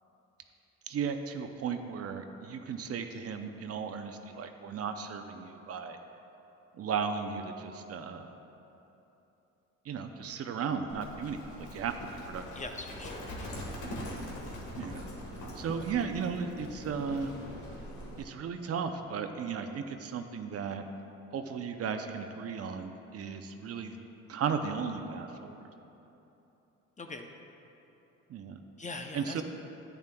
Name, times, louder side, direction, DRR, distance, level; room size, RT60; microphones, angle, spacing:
voice 1, 0.9-6.0 6.7-8.3 9.9-12.4 14.8-15.0 15.6-17.3 18.2-20.8 21.3-24.0 24.3-25.6 28.3-28.6 29.1-29.4, right 6 dB, 50° right, 6 dB, 0.6 m, -35 dB
Livestock farm animals working animals, 10.9-18.2, equal, 80° left, 1.5 m, -42 dB
voice 2, 12.5-13.6 27.0-27.3 28.8-29.4, left 3 dB, 25° left, 4 dB, 0.6 m, -42 dB
10.5 x 9.1 x 2.2 m, 3.0 s
cardioid pair, 90°, 30 cm